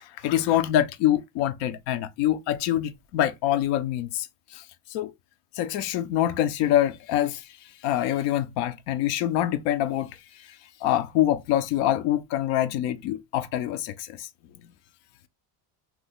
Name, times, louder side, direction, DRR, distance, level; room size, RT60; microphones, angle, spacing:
voice 1, 0.0-4.3 4.5-4.6 4.9-5.1 5.6-7.4 7.8-10.2 10.8-14.3, left 12 dB, 80° left, 0.7 m, -25 dB
2.9 x 2.3 x 3.4 m
cardioid pair, 160°, 42 cm